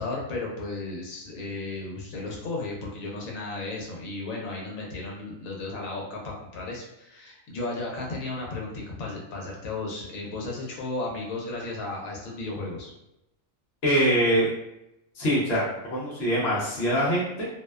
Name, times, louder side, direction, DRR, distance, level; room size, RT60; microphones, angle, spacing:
voice 1, 0.0-12.9, left 2 dB, 80° left, -2 dB, 1.1 m, -34 dB
voice 2, 13.8-14.5 15.2-17.5, equal, 60° left, -6 dB, 0.8 m, -24 dB
2.6 x 2.1 x 2.2 m, 0.86 s
omnidirectional pair, 1.4 m